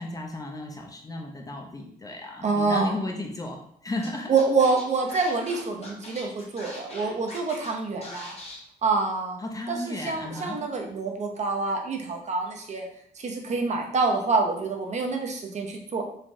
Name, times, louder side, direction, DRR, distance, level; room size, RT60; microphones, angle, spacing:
voice 1, 0.0-4.4 9.4-10.6, left 2 dB, 25° left, 1 dB, 0.5 m, -34 dB
voice 2, 2.4-2.9 4.3-8.3 8.8-9.4 9.7-12.8 13.2-16.0, right 4 dB, 50° right, 2 dB, 0.5 m, -26 dB
Scratching (performance technique), 4.0-4.1 4.4-7.7 8.0-8.6, left 1 dB, 40° left, 0.8 m, -41 dB
3.2 x 2.2 x 2.5 m, 0.67 s
cardioid pair, 95°, 16 cm